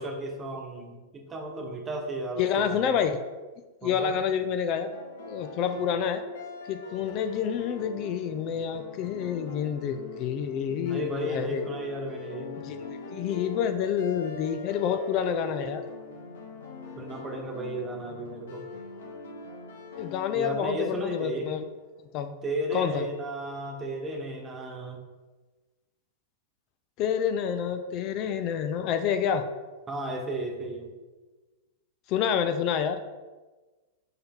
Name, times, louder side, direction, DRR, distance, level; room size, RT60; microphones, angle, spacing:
voice 1, 0.0-3.0 3.8-4.1 10.6-12.5 17.0-18.6 20.3-21.5 22.4-25.0 29.9-30.9, right 1 dB, 20° right, 2 dB, 1.2 m, -34 dB
voice 2, 2.4-3.2 3.8-4.9 5.3-6.2 6.7-11.6 12.6-15.8 20.0-21.6 22.0-22.4 22.7-23.0 27.0-29.5 32.1-33.0, left 8 dB, 45° left, 8 dB, 0.5 m, -28 dB
sound 1, 4.9-21.8, left 4 dB, 85° left, 1.5 m, -42 dB
5.6 x 5.5 x 3.7 m, 1.2 s
hypercardioid pair, 115°, 0 cm